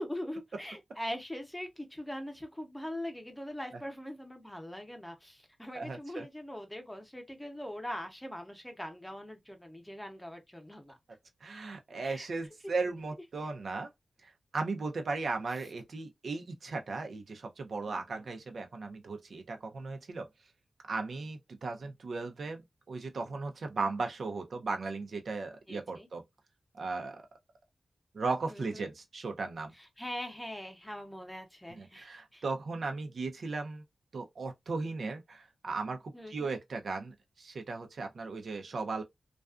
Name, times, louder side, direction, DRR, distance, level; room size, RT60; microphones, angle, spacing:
voice 1, 0.0-11.0 12.0-12.3 12.6-12.7 17.9-18.2 25.7-26.1 28.5-28.8 30.0-32.1 32.3-32.4 36.1-36.5, left 1 dB, 10° left, 0.7 m, -42 dB
voice 2, 5.7-6.2 11.4-13.9 14.2-20.3 20.9-26.2 26.7-27.2 28.1-29.7 31.7-33.8 34.1-39.0, right 3 dB, 70° right, 0.6 m, -37 dB
2.4 x 2.3 x 2.3 m
wide cardioid pair, 100°, 0 cm